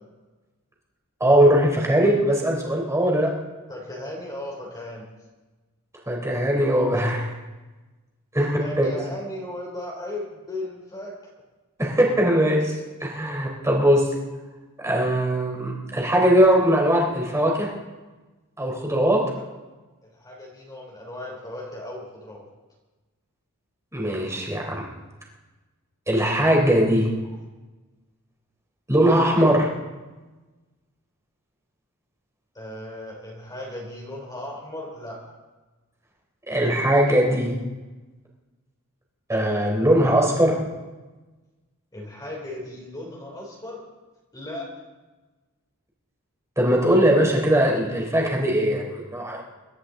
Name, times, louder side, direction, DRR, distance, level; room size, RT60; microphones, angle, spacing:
voice 1, 1.2-3.3 6.1-7.4 8.3-8.9 11.8-14.1 14.8-17.7 18.6-19.3 23.9-24.9 26.1-27.1 28.9-29.7 36.5-37.5 39.3-40.6 46.6-49.4, right 1 dB, 15° right, -1 dB, 3.8 m, -20 dB
voice 2, 3.7-5.1 8.6-11.3 19.3-19.4 20.0-22.4 32.5-35.2 41.9-43.8 44.3-44.7, left 1 dB, 20° left, -2 dB, 3.3 m, -36 dB
26.0 x 12.5 x 3.9 m, 1.2 s
head